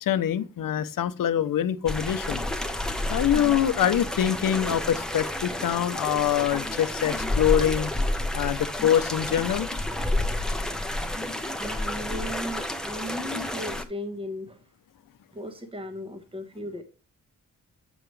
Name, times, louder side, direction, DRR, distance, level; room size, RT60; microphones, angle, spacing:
voice 1, 0.0-2.4 3.1-7.9 8.3-9.7, left 10 dB, 85° left, 0.7 m, -24 dB
sound 1, 1.9-13.8, left 1 dB, ahead, 0.8 m, -30 dB
voice 2, 11.5-14.6 15.3-16.8, left 1 dB, 15° right, 1.2 m, -36 dB
8.0 x 6.8 x 3.1 m
wide cardioid pair, 160°, 32 cm